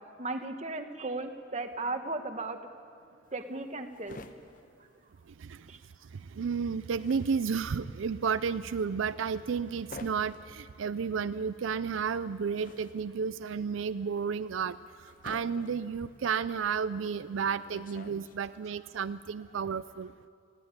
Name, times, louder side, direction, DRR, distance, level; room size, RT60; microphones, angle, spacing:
voice 1, 0.2-2.6 3.3-4.2 5.7-5.8, right 2 dB, 35° right, 6 dB, 1.2 m, -36 dB
sound 1, 3.3-5.8 6.0-18.7, left 2 dB, 45° left, 0.9 m, -51 dB
voice 2, 6.1-14.8 15.0-20.1, right 6 dB, 80° right, 13 dB, 0.4 m, -32 dB
20.5 x 15.5 x 9.6 m, 2.3 s
head